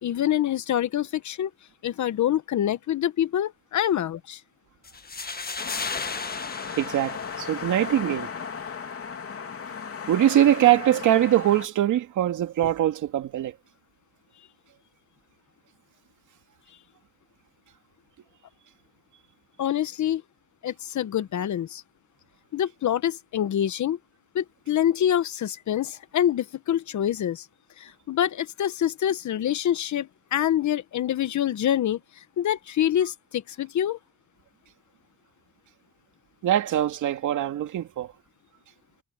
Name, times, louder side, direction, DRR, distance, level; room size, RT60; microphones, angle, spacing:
voice 1, 0.0-1.5 1.8-4.4 19.6-20.2 20.6-21.8 22.5-24.0 24.3-27.4 27.8-32.0 32.4-34.0, left 10 dB, 70° left, 1.3 m, -26 dB
sound 1, 4.8-7.9, left 4 dB, 30° left, 1.8 m, -35 dB
sound 2, 5.6-11.7, left 6 dB, 50° left, 3.2 m, -36 dB
voice 2, 6.8-8.3 10.1-13.5 36.4-38.1, right 12 dB, 85° right, 2.6 m, -22 dB
cardioid pair, 75°, 30 cm